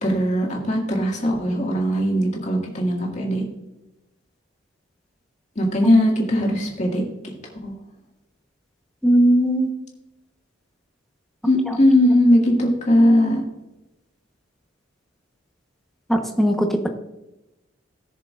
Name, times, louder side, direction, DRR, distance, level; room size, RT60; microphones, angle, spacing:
voice 1, 0.0-3.4 5.6-7.0 7.6-7.7 11.4-13.4, left 1 dB, 40° left, -1 dB, 2.0 m, -19 dB
voice 2, 9.0-9.7 11.7-11.8 12.0-12.1 16.1-16.9, right 1 dB, ahead, 3 dB, 1.0 m, -19 dB
17.5 x 6.6 x 2.5 m, 0.97 s
head